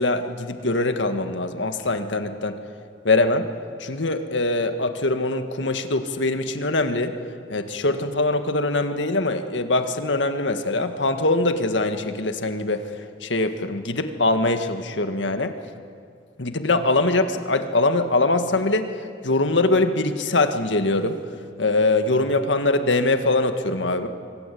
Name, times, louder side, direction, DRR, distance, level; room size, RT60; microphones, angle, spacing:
voice 1, 0.0-2.6 3.0-3.5 3.8-7.2 7.5-12.8 13.2-15.5 16.4-18.9 19.2-21.2 21.6-24.1, left 2 dB, 85° left, 8 dB, 1.8 m, -22 dB
24.0 x 24.0 x 8.5 m, 2.4 s
head